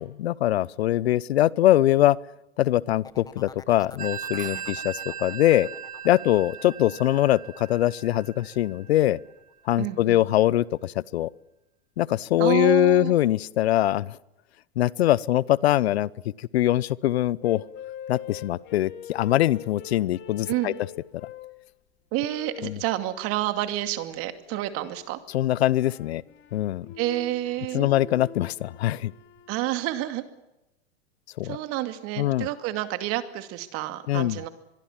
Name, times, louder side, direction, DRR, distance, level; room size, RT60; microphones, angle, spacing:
voice 1, 0.0-2.2 2.6-5.7 6.0-9.2 9.7-11.3 12.0-14.2 14.8-16.1 16.4-17.6 18.1-20.7 22.6-22.8 25.3-26.2 26.5-26.9 27.7-29.1 31.4-31.6 32.2-32.5 34.1-34.4, left 14 dB, 75° left, 23 dB, 0.8 m, -22 dB
sound 1, 3.0-8.7 9.1-9.5, left 5 dB, 10° left, 1.3 m, -49 dB
Telephone, 4.0-9.3, right 8 dB, 25° right, 3.5 m, -38 dB
voice 2, 9.8-10.2 12.4-13.2 20.5-20.8 22.1-25.2 27.0-27.9 29.5-30.3 31.4-34.5, right 15 dB, 45° right, 9 dB, 2.5 m, -29 dB
sound 2, 17.4-21.6 22.2-22.8 24.4-25.1 25.7-29.6, left 9 dB, 35° left, 2.8 m, -43 dB
25.0 x 22.5 x 7.4 m, 0.95 s
hypercardioid pair, 115°, 32 cm